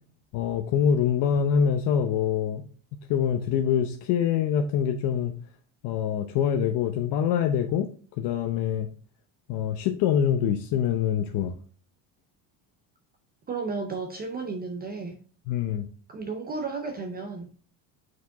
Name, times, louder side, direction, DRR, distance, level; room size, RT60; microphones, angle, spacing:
voice 1, 0.3-2.6 3.1-5.3 5.8-7.9 8.2-8.9 9.5-11.5 15.5-15.9, left 8 dB, 65° left, 0.8 m, -25 dB
voice 2, 13.5-15.2 16.1-17.6, right 4 dB, 20° right, 0.6 m, -33 dB
6.4 x 4.9 x 3.4 m
cardioid pair, 165°, 45 cm